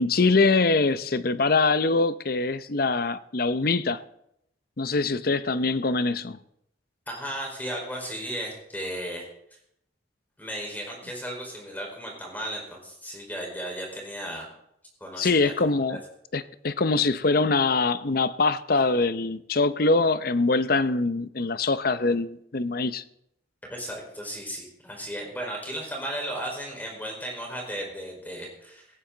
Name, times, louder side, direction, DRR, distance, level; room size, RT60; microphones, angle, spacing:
voice 1, 0.0-4.0 4.8-6.4 15.2-16.0 16.3-23.0, left 3 dB, 55° left, 0.7 m, -23 dB
voice 2, 7.1-9.3 10.4-14.5 15.0-15.5 15.9-16.0 23.7-28.9, equal, 10° left, 4.6 m, -35 dB
18.0 x 15.0 x 4.0 m
head